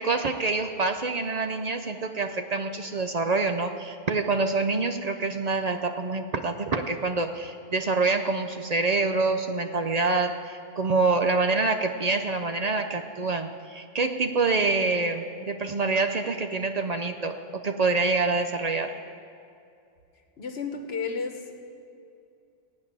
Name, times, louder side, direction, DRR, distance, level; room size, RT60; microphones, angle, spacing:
voice 1, 0.0-18.9, right 3 dB, 50° right, 7 dB, 0.6 m, -26 dB
voice 2, 20.4-21.6, left 5 dB, 80° left, 4 dB, 1.4 m, -32 dB
15.5 x 5.3 x 9.5 m, 2.5 s
omnidirectional pair, 1.0 m